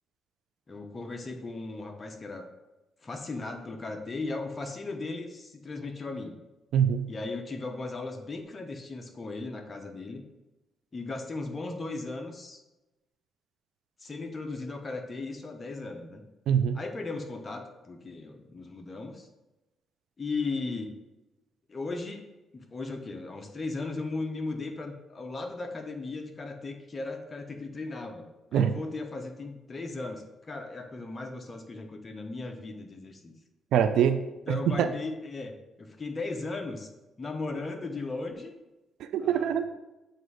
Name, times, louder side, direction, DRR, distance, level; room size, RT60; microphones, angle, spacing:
voice 1, 0.7-2.5 3.0-6.3 7.1-10.2 10.9-12.6 14.0-16.2 16.7-19.3 20.2-20.9 21.7-22.2 22.5-33.3 34.5-36.9 37.2-38.5 39.2-39.6, left 3 dB, 30° left, 4 dB, 0.9 m, -37 dB
voice 2, 6.7-7.1 16.5-16.8 28.5-28.7 33.7-34.9 39.0-39.7, right 8 dB, 80° right, 9 dB, 0.4 m, -24 dB
7.7 x 2.6 x 4.8 m, 1.0 s
cardioid pair, 90°, 0 cm